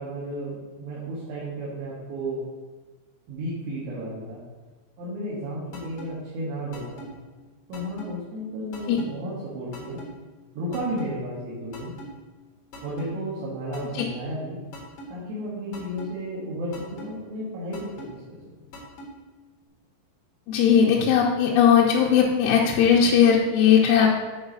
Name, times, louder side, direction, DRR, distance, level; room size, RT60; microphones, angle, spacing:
voice 1, 0.0-2.4 3.3-4.4 5.0-7.2 7.7-10.0 10.5-12.0 12.8-14.6 15.1-18.6, equal, 70° right, -7 dB, 4.0 m, -33 dB
sound 1, 5.7-6.1 6.7-7.1 7.7-8.1 8.7-9.1 9.7-10.1 10.7-11.1 11.7-12.1 12.7-13.1 13.7-14.1 14.7-15.1 15.7-16.1 16.7-17.1 17.7-18.1 18.7-19.1, left 1 dB, 55° left, 1.6 m, -41 dB
voice 2, 20.5-24.1, left 7 dB, 85° left, -4 dB, 3.4 m, -18 dB
9.8 x 4.8 x 5.4 m, 1.3 s
omnidirectional pair, 5.9 m